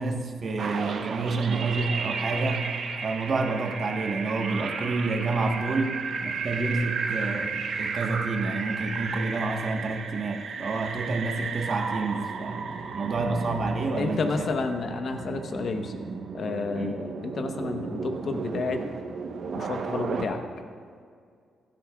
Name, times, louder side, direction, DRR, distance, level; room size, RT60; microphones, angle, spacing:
voice 1, 0.0-2.7 3.0-12.7 12.9-14.5 16.7-16.9, right 3 dB, 45° right, 3 dB, 1.2 m, -29 dB
sound 1, 0.6-20.2, right 5 dB, 60° right, 0.9 m, -34 dB
voice 2, 14.0-16.0 16.3-18.8 19.5-20.4, left 4 dB, 55° left, 5 dB, 1.0 m, -30 dB
15.5 x 13.0 x 2.3 m, 2.2 s
cardioid pair, 110°, 0 cm